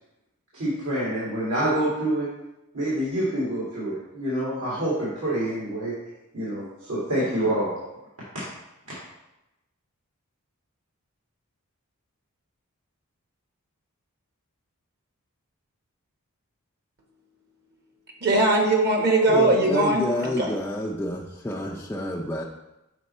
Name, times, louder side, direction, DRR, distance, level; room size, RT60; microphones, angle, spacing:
voice 1, 0.5-2.3 2.7-5.9 6.3-7.7 8.3-8.4, right 1 dB, 75° right, -9 dB, 2.1 m, -27 dB
voice 2, 18.2-20.5, right 2 dB, 45° right, 1 dB, 1.0 m, -20 dB
voice 3, 19.3-22.4, left 1 dB, 10° left, -2 dB, 0.3 m, -28 dB
6.6 x 4.3 x 4.1 m, 0.94 s
head